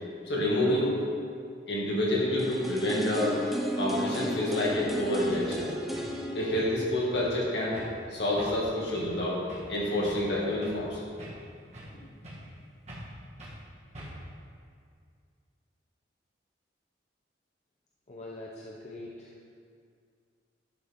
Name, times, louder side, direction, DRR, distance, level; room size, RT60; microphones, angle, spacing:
voice 1, 0.3-0.9 1.7-3.4 3.7-5.7 6.3-7.8 8.1-9.4 9.7-11.0, left 1 dB, 65° left, -5 dB, 2.2 m, -28 dB
sound 1, 2.4-8.3 8.6-8.7, equal, ahead, 0.7 m, -35 dB
sound 2, 4.7-4.9 5.3-5.5 5.9-6.2 6.5-6.9 7.1-7.4 7.7-8.0 8.4-8.6 8.9-9.2 9.5-9.7 10.0-10.9 11.2-12.0 12.2-12.5 12.9-13.1 13.4-13.6 13.9-14.3, equal, 35° right, 1.8 m, -44 dB
voice 2, 18.1-19.3, left 2 dB, 40° left, -3 dB, 0.7 m, -43 dB
11.0 x 6.6 x 3.7 m, 2.2 s
head